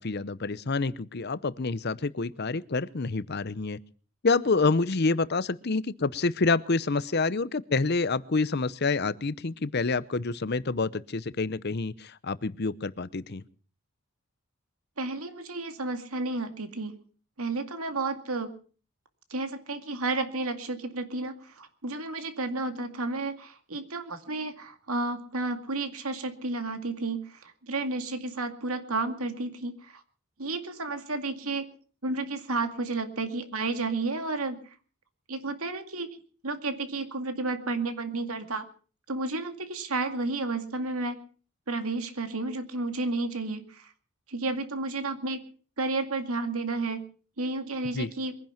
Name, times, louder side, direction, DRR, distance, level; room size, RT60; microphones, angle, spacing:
voice 1, 0.0-3.8 4.2-13.4 47.9-48.1, left 3 dB, 45° left, 17 dB, 0.7 m, -27 dB
voice 2, 15.0-17.0 17.4-18.5 19.3-30.0 30.4-31.7 32.0-34.6 35.3-36.1 36.4-38.7 39.1-41.2 41.7-43.9 44.3-45.4 45.8-47.0 47.4-48.3, right 3 dB, 75° right, 8 dB, 2.2 m, -32 dB
23.0 x 10.5 x 5.8 m, 0.41 s
head